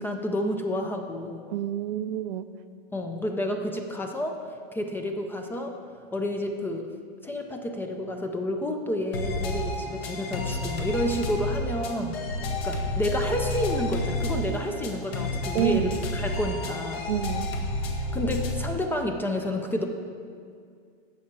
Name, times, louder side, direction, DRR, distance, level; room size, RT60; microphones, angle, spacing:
voice 1, 0.0-1.4 2.9-4.4 4.7-5.7 6.1-6.9 7.2-12.2 12.6-17.0 17.9-19.9, left 1 dB, 5° left, 4 dB, 0.3 m, -30 dB
voice 2, 1.5-2.5 15.5-16.0 17.1-17.5, right 12 dB, 65° right, 12 dB, 0.5 m, -28 dB
sound 1, 9.1-18.7, left 1 dB, 80° left, 1.8 m, -30 dB
15.5 x 5.6 x 4.6 m, 2.2 s
supercardioid pair, 140°, 30 cm